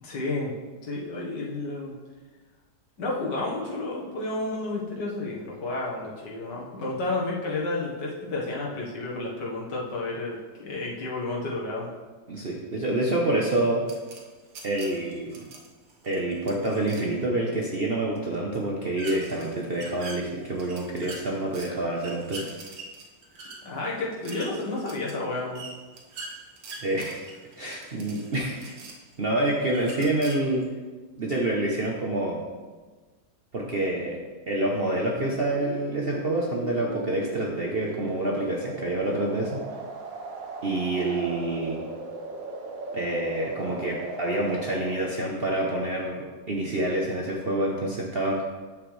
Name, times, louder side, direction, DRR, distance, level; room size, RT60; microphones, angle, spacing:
voice 1, 0.0-0.5 0.8-1.9 3.0-11.9 23.7-25.6, left 2 dB, 75° left, -4 dB, 2.1 m, -31 dB
voice 2, 12.3-13.8 14.6-15.4 16.1-22.4 26.8-27.3 27.6-28.8 29.2-30.7 31.2-32.4 33.5-34.2 34.5-39.6 40.6-41.9 42.9-48.4, right 1 dB, 45° right, -2 dB, 0.8 m, -27 dB
sound 1, 13.9-17.1 19.0-21.7 22.0-29.1 29.6-30.6, right 3 dB, 65° right, 1.6 m, -43 dB
sound 2, 35.4-45.0, right 3 dB, 85° right, 1.8 m, -37 dB
9.3 x 7.1 x 3.3 m, 1.3 s
omnidirectional pair, 2.0 m